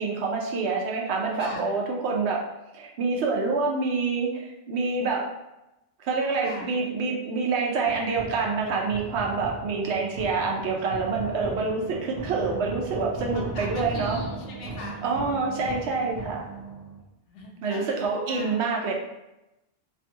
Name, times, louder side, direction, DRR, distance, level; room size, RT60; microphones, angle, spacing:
voice 1, 0.0-2.4 2.7-5.3 6.0-14.2 15.0-16.4 17.6-18.9, right 4 dB, 70° right, -1 dB, 0.9 m, -27 dB
voice 2, 1.3-1.7 6.4-6.7 10.8-10.9 13.3-15.0 17.0-18.6, left 2 dB, 80° left, 0 dB, 0.9 m, -41 dB
sound 1, 7.8-17.0, right 3 dB, 50° right, 0.4 m, -37 dB
2.6 x 2.2 x 2.8 m, 0.93 s
omnidirectional pair, 1.2 m